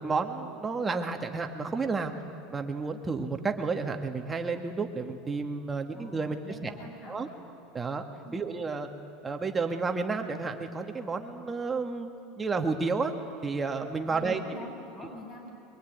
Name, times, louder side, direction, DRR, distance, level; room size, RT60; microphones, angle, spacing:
voice 1, 0.0-2.1 2.5-6.4 6.6-6.7 7.1-7.3 7.7-8.0 8.3-8.9 9.2-12.1 12.4-13.1 13.4-14.4, right 4 dB, 15° right, 4 dB, 1.9 m, -31 dB
voice 2, 5.9-7.4 8.2-8.4 14.1-15.5, left 2 dB, 40° left, 1 dB, 7.4 m, -46 dB
23.5 x 23.0 x 9.6 m, 2.6 s
supercardioid pair, 135°, 0 cm